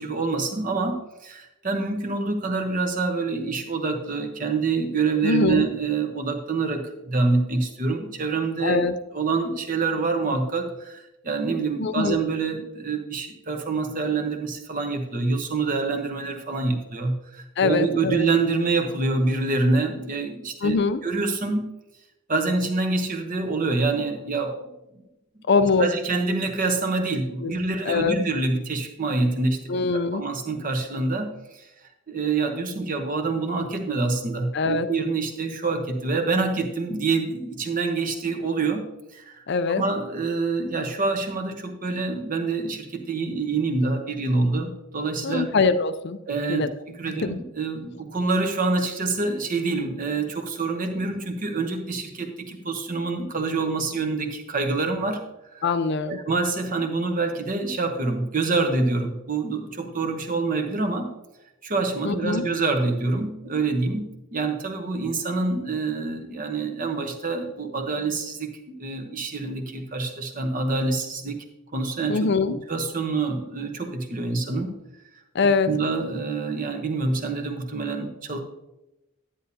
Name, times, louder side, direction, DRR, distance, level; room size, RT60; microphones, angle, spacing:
voice 1, 0.0-8.8 9.1-20.8 21.0-21.7 22.3-24.7 25.8-31.6 32.1-38.8 39.1-39.4 39.8-45.5 46.3-55.2 55.5-55.6 56.1-61.1 61.6-71.4 71.7-74.8 75.7-78.4, right 3 dB, 40° right, 5 dB, 1.0 m, -26 dB
voice 2, 5.2-5.7 8.6-9.0 11.8-12.2 17.6-18.3 20.6-21.0 25.5-25.9 27.4-27.5 27.9-28.2 29.7-30.2 34.5-34.9 39.5-39.8 45.2-46.2 46.5-46.7 47.1-47.4 55.6-56.2 62.0-62.5 72.1-72.6 75.3-75.7, left 4 dB, 55° left, 11 dB, 0.4 m, -23 dB
10.0 x 9.7 x 2.8 m, 0.94 s
head